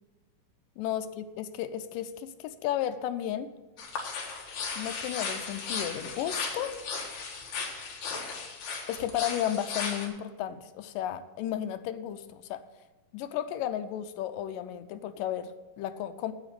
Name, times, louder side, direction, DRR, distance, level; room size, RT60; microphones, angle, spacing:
voice 1, 0.8-3.5 4.8-6.7 8.9-12.6 13.1-16.3, left 11 dB, 90° left, 8 dB, 2.3 m, -33 dB
sound 1, 3.8-10.1, left 5 dB, 65° left, 2.8 m, -36 dB
9.1 x 8.1 x 6.8 m, 1.2 s
omnidirectional pair, 3.8 m